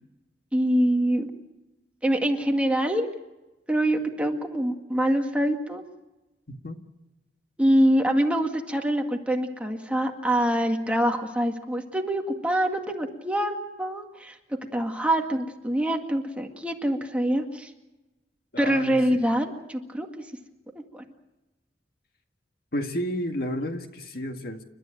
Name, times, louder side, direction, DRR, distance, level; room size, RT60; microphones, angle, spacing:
voice 1, 0.5-1.3 2.0-3.1 3.7-5.8 7.6-14.4 14.7-17.7 18.6-20.1 20.9-21.0, right 1 dB, 5° right, 3 dB, 1.9 m, -25 dB
voice 2, 6.5-6.8 18.5-19.2 22.7-24.6, equal, 60° left, 5 dB, 1.9 m, -31 dB
30.0 x 13.0 x 9.0 m, 1.0 s
head